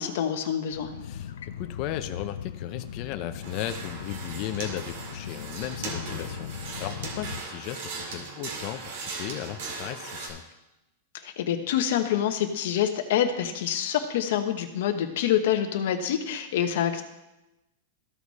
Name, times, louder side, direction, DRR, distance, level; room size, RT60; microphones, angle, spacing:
voice 1, 0.0-0.9 11.2-17.0, left 9 dB, 60° left, 7 dB, 1.1 m, -26 dB
sound 1, 0.7-7.4, left 8 dB, 85° left, 0.6 m, -39 dB
voice 2, 1.6-10.5, left 12 dB, 35° left, 8 dB, 0.6 m, -36 dB
sound 2, 3.4-10.3, right 4 dB, 60° right, 2.3 m, -38 dB
14.0 x 4.9 x 4.1 m, 0.97 s
supercardioid pair, 160°, 0 cm